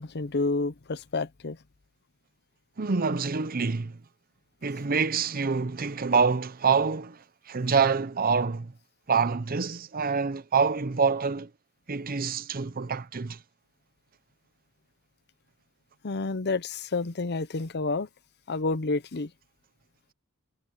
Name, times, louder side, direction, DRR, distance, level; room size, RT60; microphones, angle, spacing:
voice 1, 0.0-1.6 16.0-18.1 18.5-19.3, left 3 dB, 50° left, 0.7 m, -29 dB
voice 2, 2.8-4.0 4.6-8.7 9.1-11.5 11.9-13.4, right 5 dB, 40° right, 0.7 m, -26 dB
head